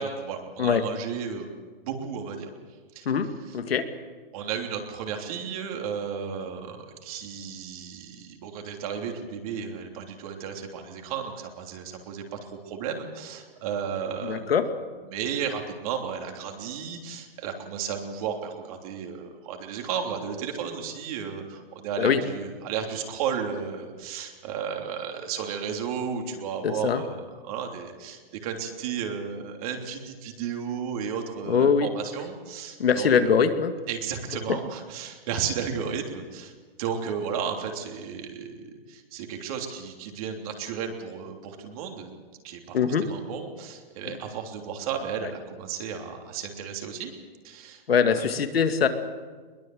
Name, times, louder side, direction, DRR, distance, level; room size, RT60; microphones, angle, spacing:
voice 1, 0.0-1.6 1.8-2.5 2.9-3.1 4.3-14.5 15.1-33.3 33.9-36.5 36.8-42.1 42.4-42.8 43.0-47.1 47.4-48.3, right 7 dB, 40° right, 3 dB, 3.3 m, -33 dB
voice 2, 14.2-14.7 22.0-22.2 26.6-27.0 31.4-31.9 32.8-33.7 42.7-43.1 44.1-44.2 47.9-48.9, left 6 dB, 85° left, 7 dB, 2.3 m, -22 dB
21.5 x 21.5 x 7.9 m, 1.5 s
hypercardioid pair, 160°, 29 cm